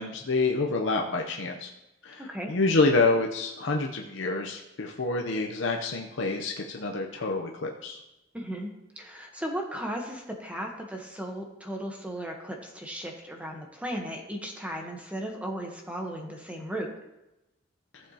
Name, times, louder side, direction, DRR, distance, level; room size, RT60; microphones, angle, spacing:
voice 1, 0.0-1.7 2.0-8.0 17.9-18.0, left 3 dB, 80° left, 1 dB, 0.8 m, -27 dB
voice 2, 2.2-2.5 8.3-16.9, equal, 5° right, 1 dB, 1.1 m, -36 dB
14.5 x 7.5 x 2.9 m, 0.96 s
head